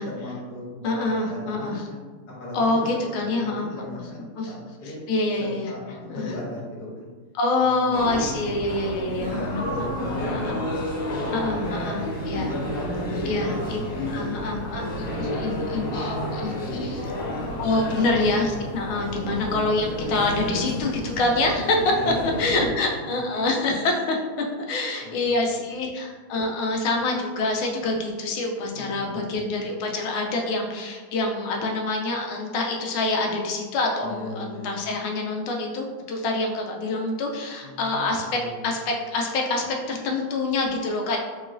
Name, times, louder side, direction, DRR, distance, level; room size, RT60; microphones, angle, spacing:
voice 1, 0.1-2.0 2.4-2.9 3.2-5.0 5.4-7.1 7.6-8.5 9.1-10.7 11.1-14.6 15.2-17.3 18.0-18.1 19.0-19.3 22.0-22.8 25.0-25.4 28.7-29.5 34.0-34.7 37.6-38.6, left 1 dB, 55° left, -6 dB, 1.6 m, -37 dB
voice 2, 0.8-1.8 2.5-3.7 4.4-4.5 4.8-5.7 6.1-6.3 7.3-9.6 10.3-10.6 11.3-12.6 13.2-13.8 14.1-16.5 16.8-17.0 17.6-24.2 24.7-38.4 38.6-41.2, left 2 dB, 85° left, 1 dB, 1.5 m, -26 dB
sound 1, 7.9-22.7, equal, 5° left, 0.8 m, -31 dB
4.6 x 3.0 x 2.5 m, 1.4 s
omnidirectional pair, 2.3 m